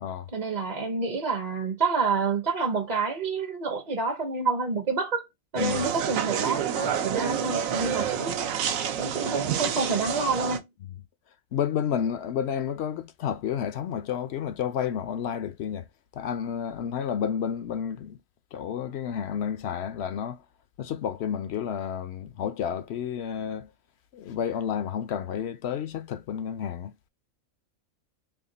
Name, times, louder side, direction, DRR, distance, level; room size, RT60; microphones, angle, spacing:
voice 1, 0.3-5.2 5.5-8.5 9.0-10.6, right 4 dB, 40° right, 0.7 m, -28 dB
sound 1, 5.6-10.6, right 8 dB, 80° right, 1.0 m, -28 dB
voice 2, 11.5-15.9 16.1-18.2 18.5-20.4 20.8-23.7 24.1-27.1, left 8 dB, 65° left, 0.7 m, -31 dB
3.6 x 2.3 x 3.8 m
omnidirectional pair, 1.4 m